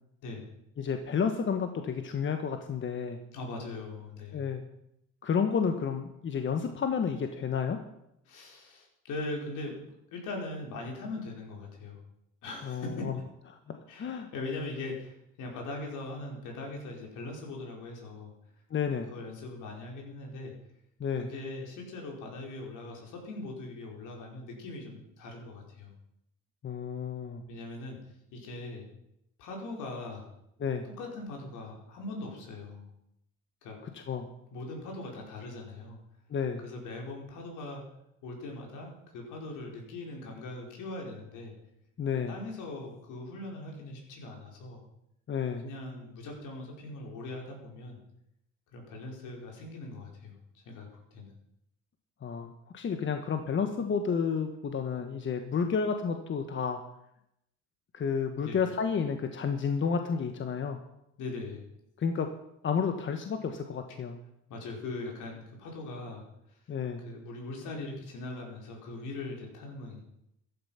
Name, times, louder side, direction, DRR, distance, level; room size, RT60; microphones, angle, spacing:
voice 1, 0.8-3.2 4.3-4.6 5.2-7.8 12.6-13.1 13.7-14.3 18.7-19.1 21.0-21.3 26.6-27.4 30.6-30.9 33.9-34.3 36.3-36.6 42.0-42.4 45.3-45.7 52.2-56.8 57.9-60.8 62.0-62.3 62.6-64.2 66.7-67.0, left 6 dB, 40° left, 6 dB, 1.3 m, -31 dB
voice 2, 3.3-4.4 8.3-9.8 10.1-12.0 12.4-13.1 13.9-18.3 19.1-20.5 21.2-25.9 27.5-28.0 28.3-28.9 29.4-30.2 30.8-32.9 33.6-33.8 34.5-36.0 36.6-37.8 38.2-41.5 42.3-44.8 45.6-48.0 48.7-51.3 58.4-58.6 61.2-61.7 64.5-66.2 66.5-66.6 67.0-70.0, left 2 dB, 75° left, 0 dB, 4.9 m, -40 dB
14.0 x 11.5 x 5.8 m, 0.80 s
cardioid pair, 100°, 31 cm